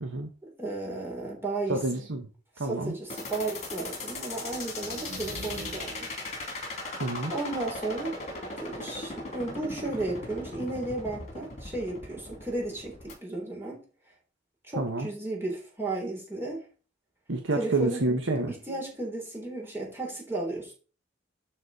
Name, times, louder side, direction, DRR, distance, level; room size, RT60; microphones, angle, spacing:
voice 1, 0.4-1.8 2.6-6.1 7.3-8.2 8.6-13.8 14.7-16.6 17.5-18.0 18.5-20.7, right 2 dB, 15° right, 3.2 m, -34 dB
voice 2, 1.7-2.3 2.6-2.9 7.0-7.3 14.8-15.1 17.3-18.5, right 2 dB, 80° right, 1.1 m, -28 dB
sound 1, 3.1-13.1, left 2 dB, 40° left, 2.6 m, -38 dB
sound 2, 4.8-6.3, right 1 dB, 50° right, 2.2 m, -42 dB
11.5 x 4.1 x 4.1 m
head